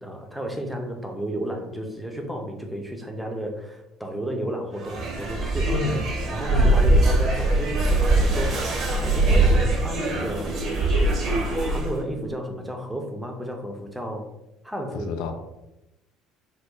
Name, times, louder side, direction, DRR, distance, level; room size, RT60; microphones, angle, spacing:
voice 1, 0.0-5.8 6.3-10.5 10.9-14.3 14.6-15.1, equal, 5° right, 1 dB, 0.6 m, -33 dB
sound 1, 4.8-12.0, right 2 dB, 45° right, 0.7 m, -22 dB
voice 2, 5.7-6.0 6.5-6.8 15.0-15.3, left 4 dB, 65° left, 4 dB, 0.4 m, -27 dB
2.8 x 2.1 x 3.7 m, 0.91 s
figure-of-eight pair, 55°, 0 cm